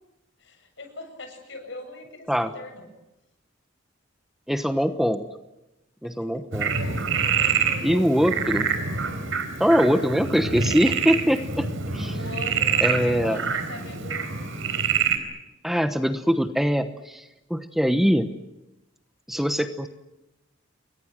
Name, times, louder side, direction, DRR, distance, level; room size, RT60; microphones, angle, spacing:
voice 1, 0.4-2.9 6.0-6.3 12.1-14.9, left 2 dB, 65° left, 6 dB, 7.8 m, -41 dB
voice 2, 4.5-5.3 6.0-6.8 7.8-8.7 9.6-12.2 12.8-13.4 15.6-17.2 17.5-18.3 19.3-19.9, equal, ahead, 8 dB, 1.0 m, -23 dB
Frog, 6.5-15.2, right 6 dB, 85° right, 4.2 m, -26 dB
29.0 x 23.0 x 7.6 m, 0.96 s
head